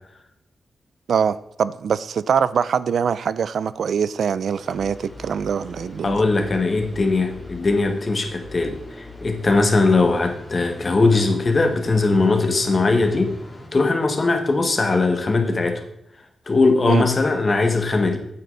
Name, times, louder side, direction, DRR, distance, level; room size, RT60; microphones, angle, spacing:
voice 1, 1.1-6.2 16.9-17.1, right 7 dB, 75° right, 16 dB, 0.4 m, -23 dB
sound 1, 4.5-13.7, left 2 dB, 20° left, 2.8 m, -41 dB
voice 2, 6.0-13.4 13.7-15.8 16.5-18.2, left 3 dB, 40° left, 6 dB, 1.6 m, -20 dB
9.1 x 8.3 x 4.0 m, 0.80 s
cardioid pair, 85°, 0 cm